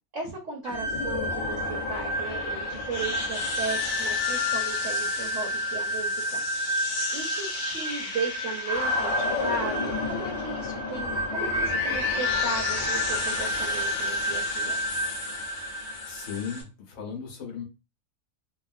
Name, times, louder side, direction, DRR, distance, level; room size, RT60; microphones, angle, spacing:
voice 1, 0.1-6.4 7.1-14.8, right 3 dB, 65° right, -1 dB, 1.1 m, -36 dB
sound 1, 0.6-16.6, left 2 dB, 50° left, 0.7 m, -29 dB
voice 2, 16.1-17.6, left 7 dB, 75° left, 2 dB, 1.3 m, -36 dB
3.1 x 2.2 x 2.4 m, 0.28 s
omnidirectional pair, 1.5 m